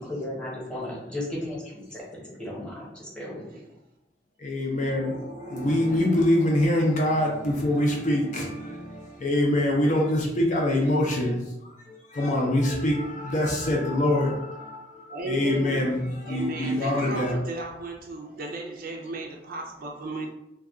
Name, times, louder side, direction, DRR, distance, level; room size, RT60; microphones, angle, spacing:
voice 1, 0.0-3.7, left 1 dB, 5° left, -6 dB, 1.0 m, -35 dB
voice 2, 4.4-11.4 11.8-17.4, left 1 dB, 45° left, -1 dB, 0.5 m, -25 dB
voice 3, 15.1-15.9 16.2-20.3, right 2 dB, 55° right, 0 dB, 0.5 m, -35 dB
2.3 x 2.3 x 3.6 m, 0.87 s
head